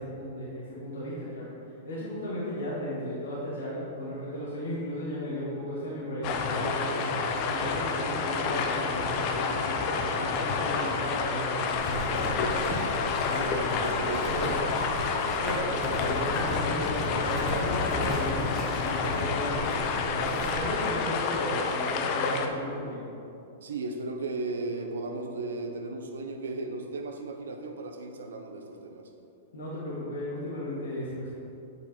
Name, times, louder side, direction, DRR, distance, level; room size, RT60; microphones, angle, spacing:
voice 1, 0.0-7.2 7.5-12.9 13.3-14.7 15.4-19.7 20.1-23.1 29.5-31.3, equal, 85° left, -8 dB, 1.8 m, -35 dB
sound 1, 6.2-22.5, left 4 dB, 45° left, 0.7 m, -29 dB
sound 2, 11.7-20.7, equal, 5° right, 1.6 m, -38 dB
voice 2, 13.3-15.4 23.6-29.1, right 3 dB, 85° right, 3 dB, 0.9 m, -36 dB
8.4 x 5.2 x 4.5 m, 2.8 s
hypercardioid pair, 120°, 0 cm